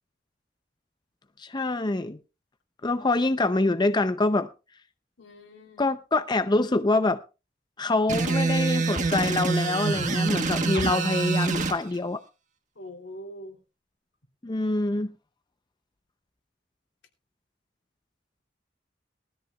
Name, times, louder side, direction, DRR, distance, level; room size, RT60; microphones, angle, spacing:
voice 1, 1.4-2.2 2.8-4.5 5.8-7.2 7.8-12.2 14.4-15.1, left 2 dB, 25° left, 0.5 m, -25 dB
voice 2, 5.2-5.8 12.8-13.6, equal, 80° left, 2.9 m, -43 dB
sound 1, 8.1-11.8, right 3 dB, 45° right, 1.4 m, -25 dB
19.5 x 13.5 x 2.3 m
head